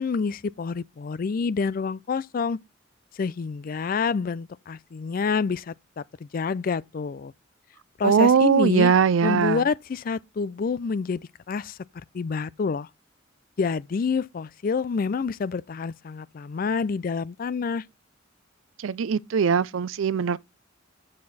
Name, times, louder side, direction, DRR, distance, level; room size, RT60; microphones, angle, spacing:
voice 1, 0.0-2.6 3.1-7.3 8.0-8.9 9.2-11.2 11.5-11.8 12.1-12.9 13.6-17.8, left 5 dB, 45° left, 0.4 m, -28 dB
voice 2, 8.0-9.6 18.8-20.4, right 6 dB, 90° right, 0.4 m, -20 dB
7.7 x 6.5 x 4.1 m
head